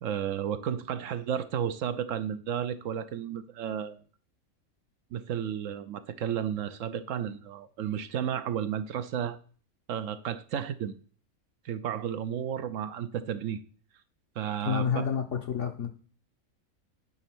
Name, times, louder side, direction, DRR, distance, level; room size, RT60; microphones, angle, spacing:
voice 1, 0.0-4.0 5.1-9.4 9.9-10.9 11.6-13.6 14.4-15.1, right 9 dB, 70° right, 0.9 m, -32 dB
voice 2, 14.6-15.9, left 7 dB, 60° left, 1.1 m, -29 dB
10.0 x 4.2 x 6.1 m
omnidirectional pair, 1.5 m